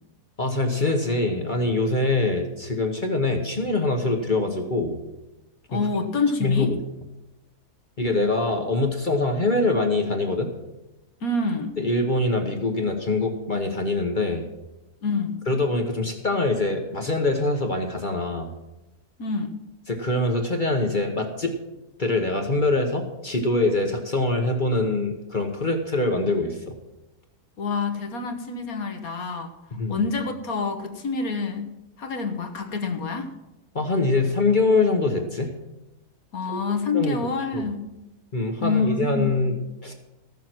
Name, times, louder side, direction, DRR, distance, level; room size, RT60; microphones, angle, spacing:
voice 1, 0.4-5.0 6.4-6.8 8.0-10.5 11.8-14.4 15.5-18.5 19.9-21.6 22.0-26.8 29.7-30.0 33.7-35.5 36.5-36.6 36.9-37.2 37.5-37.7 38.3-39.6 39.8-39.9, left 2 dB, 35° left, 3 dB, 1.1 m, -24 dB
voice 2, 5.7-6.7 11.2-11.7 15.0-15.4 19.2-19.5 27.6-29.6 29.9-31.7 32.0-33.3 36.3-37.9 38.6-39.4, left 4 dB, 65° left, 7 dB, 1.5 m, -27 dB
14.5 x 7.2 x 6.0 m, 0.96 s
omnidirectional pair, 1.7 m